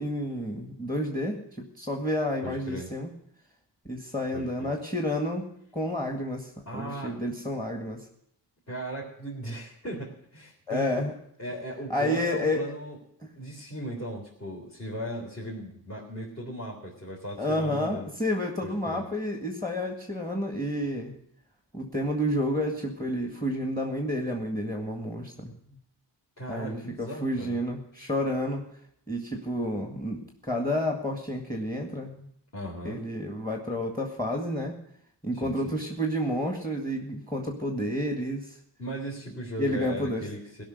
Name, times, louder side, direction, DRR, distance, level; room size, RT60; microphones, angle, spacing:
voice 1, 0.0-3.1 3.9-5.5 5.7-8.1 10.7-11.1 11.9-12.7 17.4-21.1 21.7-25.5 26.5-28.6 29.1-32.3 32.8-34.8 35.2-38.6 39.6-40.3, left 1 dB, 10° left, 3 dB, 1.9 m, -30 dB
voice 2, 2.4-2.9 4.3-4.7 6.7-7.3 8.7-11.0 11.4-13.0 13.4-18.1 18.6-19.0 26.4-27.6 32.5-33.0 35.3-35.8 38.8-40.6, right 1 dB, 40° left, -6 dB, 3.9 m, -37 dB
17.5 x 5.9 x 9.4 m, 0.71 s
wide cardioid pair, 110°, 43 cm